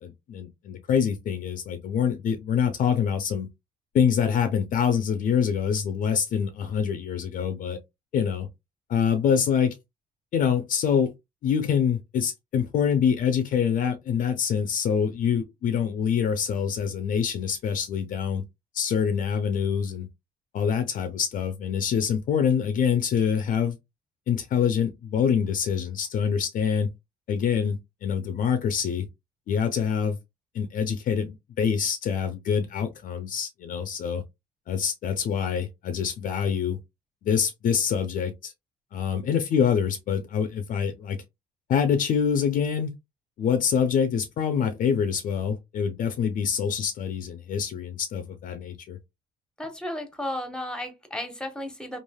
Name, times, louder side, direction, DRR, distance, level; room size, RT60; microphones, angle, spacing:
voice 1, 0.0-3.5 3.9-7.8 8.1-8.5 8.9-9.8 10.3-11.1 11.4-18.4 18.7-20.1 20.5-23.8 24.3-26.9 27.3-29.1 29.5-30.2 30.5-34.2 34.7-36.8 37.2-38.5 38.9-41.2 41.7-42.9 43.4-49.0, left 7 dB, 55° left, 0.5 m, -25 dB
voice 2, 49.6-52.0, left 1 dB, 5° left, 0.8 m, -34 dB
3.2 x 2.4 x 2.2 m
cardioid pair, 110°, 17 cm